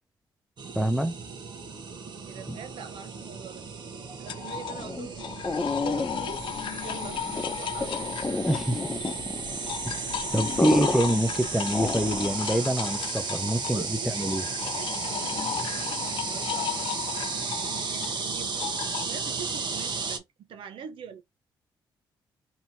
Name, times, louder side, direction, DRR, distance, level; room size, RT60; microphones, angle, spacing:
sound 1, 0.6-20.2, right 5 dB, 55° right, 1.1 m, -34 dB
voice 1, 0.7-1.1 2.5-2.6 8.5-8.8 10.3-14.4, right 1 dB, 5° right, 0.6 m, -26 dB
voice 2, 2.2-3.7 4.2-5.5 5.8-6.5 6.8-7.2 7.6-8.2 13.7-14.3 14.6-18.8 19.0-21.2, right 7 dB, 70° right, 0.7 m, -43 dB
sound 2, 4.3-9.3 9.5-19.1, left 10 dB, 65° left, 0.4 m, -35 dB
sound 3, 4.7-12.5, left 3 dB, 25° left, 0.8 m, -32 dB
4.1 x 2.9 x 2.7 m
cardioid pair, 80°, 9 cm